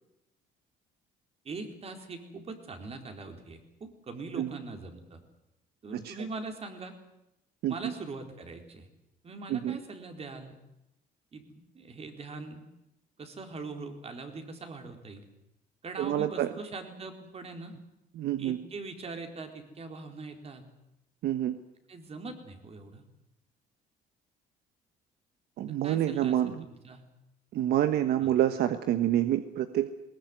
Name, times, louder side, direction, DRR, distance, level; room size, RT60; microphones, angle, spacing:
voice 1, 1.4-5.2 5.8-7.0 7.7-8.9 9.2-10.6 11.3-12.6 13.2-15.2 15.8-17.7 18.4-20.6 21.9-23.0 25.8-27.0 28.2-28.3, right 3 dB, 35° right, 5 dB, 4.2 m, -42 dB
voice 2, 16.0-16.5 18.2-18.6 21.2-21.5 25.6-26.6 27.5-29.9, right 11 dB, 70° right, 10 dB, 1.3 m, -27 dB
21.0 x 19.0 x 9.4 m, 0.85 s
cardioid pair, 110°, 17 cm